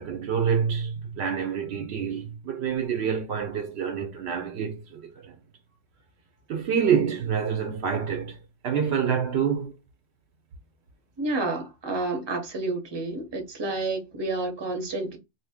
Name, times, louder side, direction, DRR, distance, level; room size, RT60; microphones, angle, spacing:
voice 1, 0.0-5.3 6.5-8.4 8.6-9.7, right 7 dB, 70° right, 0.8 m, -27 dB
voice 2, 11.2-15.2, right 2 dB, 25° right, 0.7 m, -30 dB
2.8 x 2.2 x 3.4 m
omnidirectional pair, 1.2 m